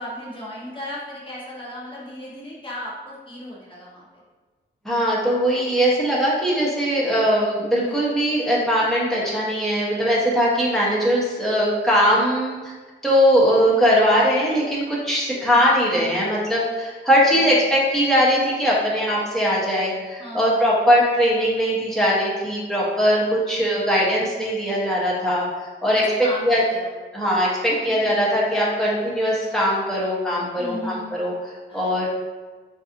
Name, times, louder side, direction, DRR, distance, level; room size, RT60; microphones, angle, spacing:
voice 1, 0.0-4.2 7.8-8.0 11.4-11.7 15.7-16.1 17.3-17.6 20.2-20.7 23.1-23.6 25.9-26.9 27.8-28.1 28.7-29.1 30.6-31.1 31.7-31.9, left 1 dB, 25° left, -7 dB, 1.2 m, -36 dB
voice 2, 4.8-12.5 13.0-26.0 26.4-26.6 27.1-32.1, equal, ahead, -7 dB, 0.9 m, -20 dB
3.9 x 2.6 x 2.6 m, 1.3 s
cardioid pair, 105°, 19 cm